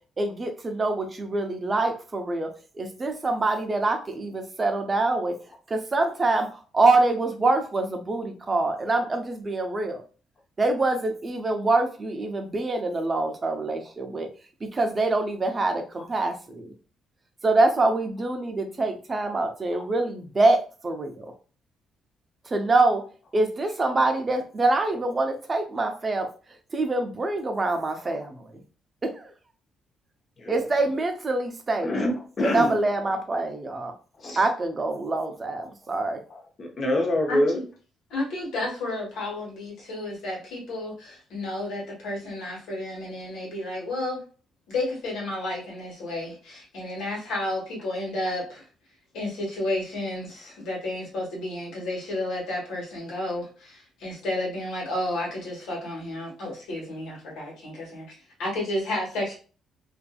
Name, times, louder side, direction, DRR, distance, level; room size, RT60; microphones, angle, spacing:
voice 1, 0.2-2.5 2.8-5.3 5.7-6.5 6.7-10.0 10.6-14.3 14.6-16.7 17.4-21.3 22.5-23.0 23.3-26.3 26.7-28.5 29.0-29.3 30.5-31.9 32.4-33.9 34.4-36.2, right 2 dB, 30° right, 5 dB, 0.6 m, -25 dB
voice 2, 31.8-32.8 34.2-34.4 36.6-37.6, left 1 dB, 45° left, 1 dB, 0.9 m, -25 dB
voice 3, 38.1-44.2 44.7-48.7 49.1-59.3, left 1 dB, 85° left, -3 dB, 1.4 m, -32 dB
2.6 x 2.5 x 2.3 m, 0.38 s
cardioid pair, 90°, 0 cm